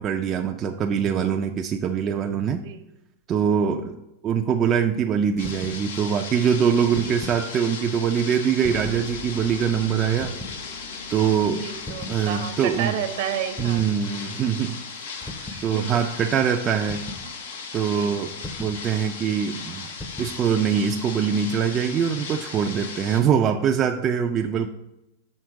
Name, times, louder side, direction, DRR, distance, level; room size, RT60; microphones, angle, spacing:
voice 1, 0.0-2.6 3.3-4.0 4.2-10.3 11.1-11.6 12.1-13.0 13.6-15.0 15.6-17.0 17.7-18.3 18.6-19.9 20.2-24.7, right 7 dB, 30° right, 3 dB, 0.4 m, -23 dB
sound 1, 5.4-23.2, left 5 dB, 85° left, 0.9 m, -37 dB
sound 2, 5.4-5.8 6.7-7.4 8.6-9.1 10.2-10.6 11.9-12.2 13.6-14.0 15.2-15.7 16.9-17.3 18.4-18.8 20.0-20.4, left 2 dB, 10° left, 0.6 m, -37 dB
sound 3, 8.7-17.2, left 2 dB, 55° left, 1.0 m, -45 dB
voice 2, 11.6-13.8 15.5-15.9 17.8-18.2 22.6-22.7, right 9 dB, 65° right, 7 dB, 0.8 m, -31 dB
6.4 x 3.6 x 4.7 m, 0.86 s
supercardioid pair, 140°, 0 cm